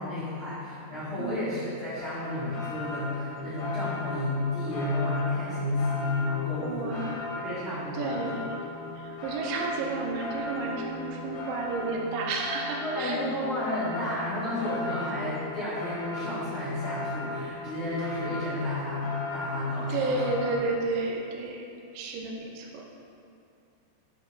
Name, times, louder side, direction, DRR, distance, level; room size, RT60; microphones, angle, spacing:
voice 1, 0.0-8.3 12.8-20.2, left 1 dB, 50° left, -14 dB, 1.8 m, -31 dB
sound 1, 2.0-20.6, left 3 dB, 65° left, 3.0 m, -37 dB
voice 2, 6.6-7.3 7.9-8.5 9.0-13.2 19.9-21.6 21.9-22.9, right 3 dB, 80° right, -1 dB, 2.1 m, -31 dB
9.2 x 5.0 x 2.6 m, 2.6 s
omnidirectional pair, 4.5 m